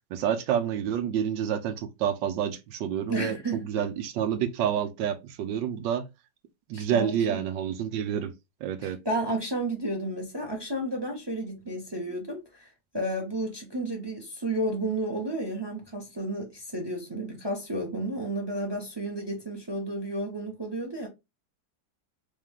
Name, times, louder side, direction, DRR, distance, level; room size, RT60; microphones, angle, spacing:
voice 1, 0.1-6.1 6.7-8.3 8.6-9.0, right 9 dB, 75° right, 1.3 m, -28 dB
voice 2, 3.1-3.6 6.7-7.4 8.8-12.7 12.9-21.1, right 1 dB, 20° right, 0.6 m, -32 dB
3.4 x 3.2 x 3.5 m
omnidirectional pair, 2.1 m